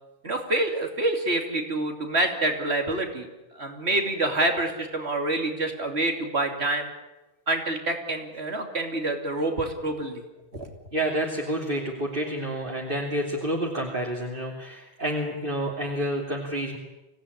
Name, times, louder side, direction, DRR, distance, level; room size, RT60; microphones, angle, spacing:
voice 1, 0.2-3.3 3.5-6.9 7.5-10.2 10.5-10.7, right 2 dB, 75° right, 4 dB, 3.2 m, -27 dB
voice 2, 10.9-16.8, right 1 dB, 55° right, -1 dB, 3.0 m, -29 dB
25.0 x 17.5 x 10.0 m, 1.0 s
omnidirectional pair, 1.1 m